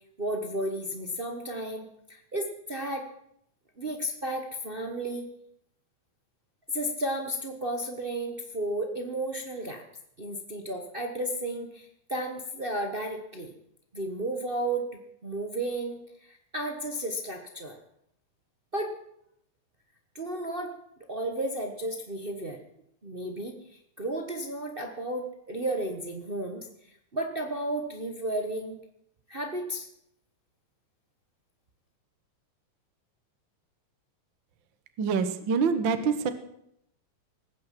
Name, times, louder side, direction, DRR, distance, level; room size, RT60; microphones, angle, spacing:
voice 1, 0.2-1.8 2.1-3.1 3.8-5.2 6.7-9.8 10.2-13.5 13.9-14.9 15.2-17.8 18.7-18.9 20.1-20.7 21.1-22.6 23.0-23.5 24.0-26.7 27.1-28.8 29.3-29.9, right 1 dB, 80° right, 3 dB, 0.5 m, -33 dB
voice 2, 35.0-36.3, right 5 dB, 55° right, 10 dB, 1.5 m, -25 dB
20.0 x 9.5 x 7.5 m, 0.74 s
omnidirectional pair, 3.5 m